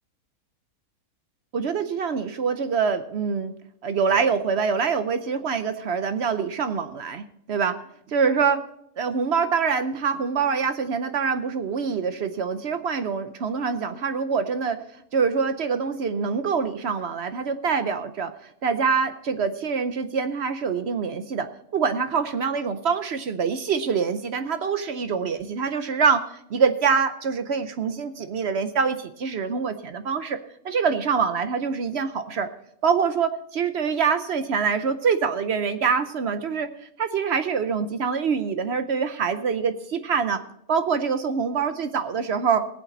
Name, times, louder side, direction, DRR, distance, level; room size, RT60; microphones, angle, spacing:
voice 1, 1.5-3.5 3.8-7.7 8.1-8.6 9.0-14.8 15.1-18.3 18.6-21.5 21.7-30.4 30.6-32.5 32.8-36.7 37.0-40.4 40.7-42.7, right 6 dB, 55° right, 10 dB, 0.8 m, -25 dB
18.0 x 8.4 x 4.0 m, 0.73 s
omnidirectional pair, 1.6 m